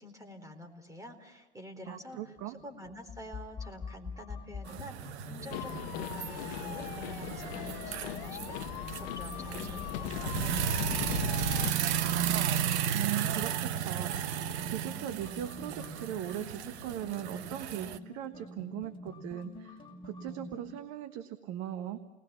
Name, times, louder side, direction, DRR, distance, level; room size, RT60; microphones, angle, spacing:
voice 1, 0.0-2.3 2.6-12.2, left 1 dB, 10° right, 7 dB, 4.1 m, -48 dB
sound 1, 1.8-20.7, left 2 dB, 15° left, 6.3 m, -46 dB
voice 2, 1.9-2.5 12.9-22.0, right 11 dB, 50° right, 9 dB, 1.4 m, -39 dB
sound 2, 4.7-18.0, right 9 dB, 70° right, 1.2 m, -34 dB
sound 3, 5.5-11.7, left 13 dB, 60° left, 1.1 m, -39 dB
30.0 x 20.0 x 7.1 m, 1.1 s
hypercardioid pair, 90°, 35 cm